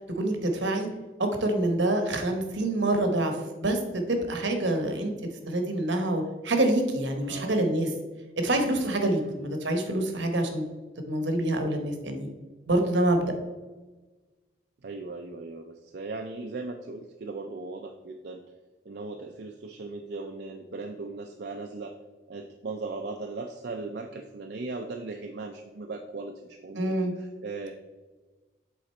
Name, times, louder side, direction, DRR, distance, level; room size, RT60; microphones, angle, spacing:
voice 1, 0.2-0.9 1.2-5.1 5.5-7.9 8.4-10.6 11.1-12.3 12.7-13.2 26.8-27.1, right 1 dB, 70° right, 5 dB, 1.0 m, -26 dB
voice 2, 7.2-7.6 9.1-9.4 14.8-18.4 18.9-22.0 22.3-27.7, right 3 dB, 55° right, 4 dB, 0.4 m, -38 dB
7.9 x 3.8 x 4.3 m, 1.2 s
head